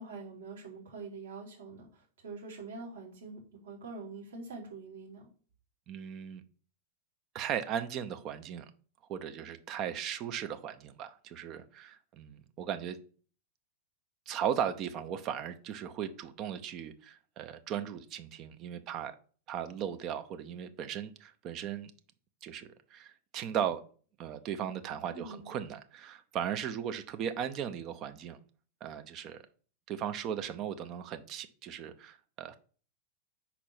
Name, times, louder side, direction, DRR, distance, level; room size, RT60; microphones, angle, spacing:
voice 1, 0.0-5.2 25.1-25.5, right 3 dB, 65° right, 2.6 m, -45 dB
voice 2, 5.9-6.4 7.3-8.7 9.1-13.0 14.3-19.1 19.5-21.9 22.4-23.8 24.2-28.4 28.8-29.4 29.9-32.6, right 9 dB, 35° right, 0.6 m, -37 dB
5.4 x 4.2 x 5.9 m
figure-of-eight pair, 90°, 0 cm